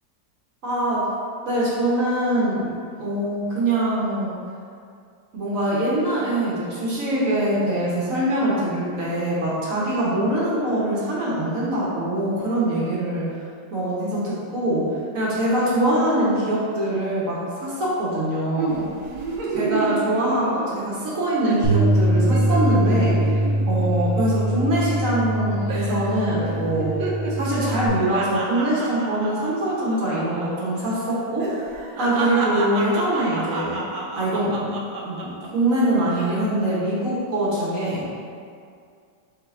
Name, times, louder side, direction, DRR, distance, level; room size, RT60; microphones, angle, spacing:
voice 1, 0.6-1.0 1.4-4.4 5.3-13.3 13.7-18.8 19.5-23.3 23.7-27.0 27.3-31.5 32.0-33.8 34.2-34.8 35.0-38.1, right 1 dB, 55° right, -7 dB, 1.2 m, -23 dB
sound 1, 18.6-21.1 21.4-21.6 21.9-25.4 25.7-26.1 26.4-30.5 30.7-30.9 31.4-35.5 36.0-36.4, right 3 dB, 75° right, 1.2 m, -30 dB
Bass guitar, 21.6-27.9, right 1 dB, 85° left, 1.8 m, -22 dB
6.4 x 3.3 x 2.5 m, 2.3 s
omnidirectional pair, 2.0 m